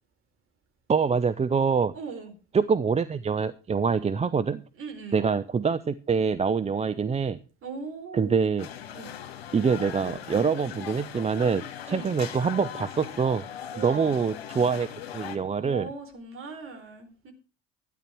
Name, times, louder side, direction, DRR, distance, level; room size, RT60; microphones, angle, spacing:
voice 1, 0.9-1.9 2.5-4.6 5.1-7.4 8.1-8.7 9.5-13.4 13.8-14.9 15.1-15.9, right 5 dB, 20° right, 13 dB, 0.7 m, -25 dB
voice 2, 1.9-2.3 4.8-5.3 7.6-8.4 8.9-9.1 11.9-12.1 13.7-14.3 15.6-17.3, right 4 dB, 45° right, 5 dB, 4.1 m, -39 dB
sound 1, 8.6-15.4, left 9 dB, 80° left, 2.0 m, -39 dB
12.5 x 10.0 x 4.6 m, 0.34 s
hypercardioid pair, 65°, 30 cm